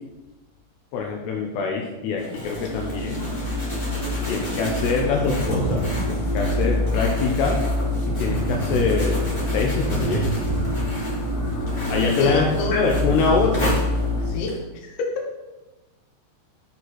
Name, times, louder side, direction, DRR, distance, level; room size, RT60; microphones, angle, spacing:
voice 1, 0.9-3.2 4.3-7.6 8.1-9.2 9.5-10.3 11.9-13.8, left 5 dB, 85° left, 0 dB, 2.4 m, -24 dB
sound 1, 2.2-14.6, equal, 10° left, 1.9 m, -35 dB
sound 2, 2.4-14.3, left 1 dB, 30° left, 0.7 m, -26 dB
Thunder, 5.3-12.6 13.7-13.8, right 4 dB, 80° right, 3.2 m, -31 dB
voice 2, 12.2-12.8 14.2-15.3, left 2 dB, 65° left, 1 dB, 2.8 m, -28 dB
12.0 x 4.4 x 4.7 m, 1.1 s
omnidirectional pair, 5.8 m